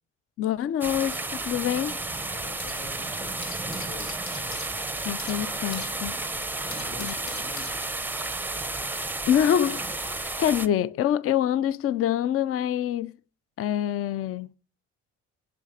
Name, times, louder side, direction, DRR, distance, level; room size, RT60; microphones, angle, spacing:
voice 1, 0.4-2.0 5.0-6.1 7.0-7.1 9.3-13.1 13.6-14.5, left 10 dB, 50° left, 0.4 m, -26 dB
sound 1, 0.8-10.7, right 2 dB, 5° right, 0.5 m, -32 dB
sound 2, 0.9-2.9 3.2-8.3, left 3 dB, 65° left, 2.0 m, -44 dB
voice 2, 2.3-4.2 6.6-7.7 11.0-11.1, left 4 dB, 90° left, 2.6 m, -46 dB
7.2 x 5.8 x 5.0 m
cardioid pair, 90°, 30 cm